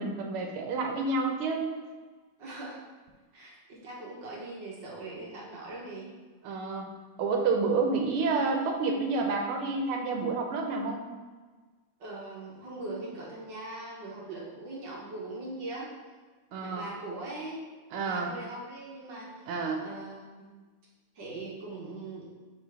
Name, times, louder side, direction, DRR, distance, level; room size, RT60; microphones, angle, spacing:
voice 1, 0.0-1.8 6.4-6.9 7.2-11.0 16.5-16.9 17.9-18.3 19.5-19.9, right 4 dB, 80° right, 3 dB, 1.7 m, -29 dB
voice 2, 2.4-2.8 3.3-6.1 12.0-15.9 16.6-19.5 19.8-20.6 21.1-22.3, right 2 dB, 60° right, -4 dB, 1.7 m, -41 dB
5.4 x 4.4 x 4.7 m, 1.4 s
omnidirectional pair, 2.4 m